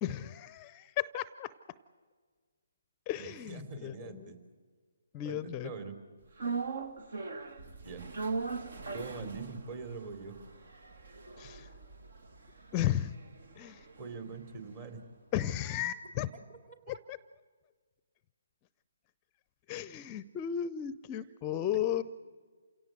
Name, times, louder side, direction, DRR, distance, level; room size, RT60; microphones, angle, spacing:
voice 1, 0.0-1.5 3.1-4.3 5.1-5.7 11.4-11.7 12.7-13.2 13.6-13.8 15.3-16.3 16.9-17.2 19.7-22.0, left 11 dB, 25° left, 17 dB, 0.6 m, -34 dB
voice 2, 3.1-4.4 5.2-6.0 7.8-8.0 8.9-10.4 14.0-15.0 16.5-16.6 16.9-17.0, right 4 dB, 35° right, 8 dB, 3.4 m, -43 dB
sound 1, 6.4-14.7 15.0-15.1, right 4 dB, 65° right, 1.8 m, -40 dB
28.5 x 17.5 x 7.9 m, 1.5 s
figure-of-eight pair, 145°, 0 cm